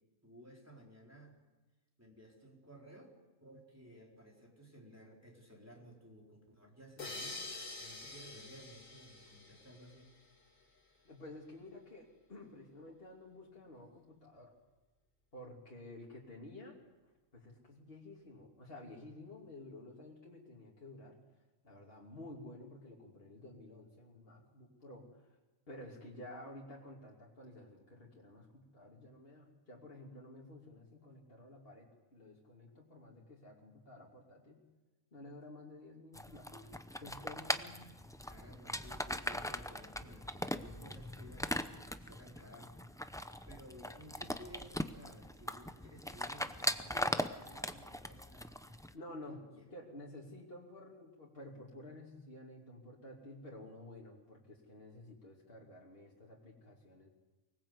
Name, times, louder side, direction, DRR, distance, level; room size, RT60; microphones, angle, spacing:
voice 1, 0.2-1.3 2.0-3.1 3.4-7.5 7.8-10.1 37.3-37.9 38.3-41.5 42.0-42.8 43.0-48.6 49.3-49.6, equal, 10° right, -1 dB, 4.3 m, -56 dB
sound 1, 7.0-10.3, left 3 dB, 75° left, 3.2 m, -47 dB
voice 2, 11.0-14.5 15.3-16.8 17.0-21.2 21.6-25.4 25.7-34.6 35.1-36.7 37.0-37.5 48.9-57.1, left 1 dB, 45° left, -3 dB, 3.0 m, -52 dB
sound 2, 36.1-48.9, left 1 dB, 5° left, 0.4 m, -40 dB
24.5 x 19.5 x 8.1 m, 1.1 s
omnidirectional pair, 1.4 m